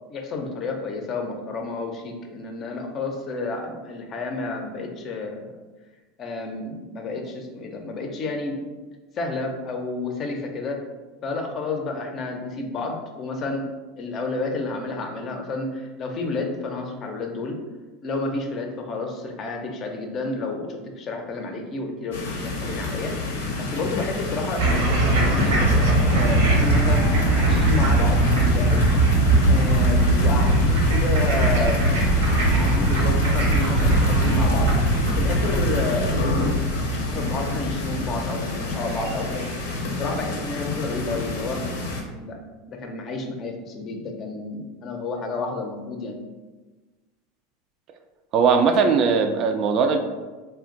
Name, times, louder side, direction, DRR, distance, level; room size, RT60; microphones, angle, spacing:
voice 1, 0.1-5.5 6.2-8.6 9.2-10.8 11.2-17.6 18.0-23.1 23.6-25.9 26.2-28.8 29.5-31.9 32.3-34.7 35.0-36.1 36.9-39.5 39.9-41.6 42.2-42.4 42.7-46.2, left 3 dB, 40° left, 3 dB, 0.5 m, -30 dB
sound 1, 22.1-42.0, left 2 dB, 90° left, 0.6 m, -29 dB
sound 2, 24.6-39.9, right 2 dB, 85° right, 1.0 m, -21 dB
voice 2, 48.3-50.0, right 5 dB, 45° right, 5 dB, 0.3 m, -19 dB
2.5 x 2.2 x 3.8 m, 1.3 s
supercardioid pair, 110°, 0 cm